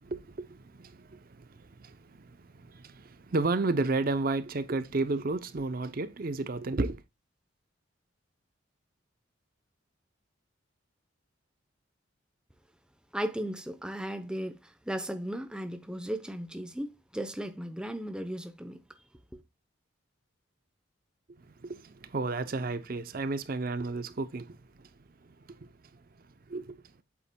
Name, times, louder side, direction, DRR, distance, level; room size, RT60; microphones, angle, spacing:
voice 1, 0.0-7.0 21.5-24.9 25.2-26.0 26.5-26.8, right 3 dB, 45° right, 0.6 m, -33 dB
voice 2, 13.1-18.8 19.3-19.4, equal, 5° right, 0.7 m, -36 dB
8.3 x 7.1 x 2.2 m
head